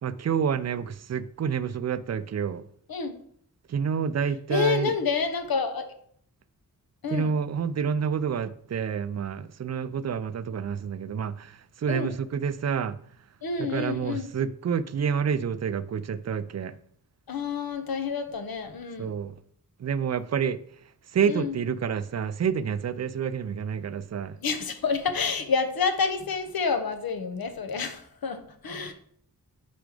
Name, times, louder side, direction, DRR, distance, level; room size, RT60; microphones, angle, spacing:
voice 1, 0.0-2.6 3.7-5.0 7.1-13.0 13.6-16.8 19.0-19.4 19.8-20.6 21.1-24.4, right 7 dB, 45° right, 0.4 m, -28 dB
voice 2, 4.5-5.9 7.0-7.3 11.9-12.2 13.4-14.3 17.3-19.1 21.3-21.5 24.4-28.9, left 5 dB, 75° left, 0.8 m, -28 dB
5.1 x 4.6 x 4.8 m
wide cardioid pair, 75°, 36 cm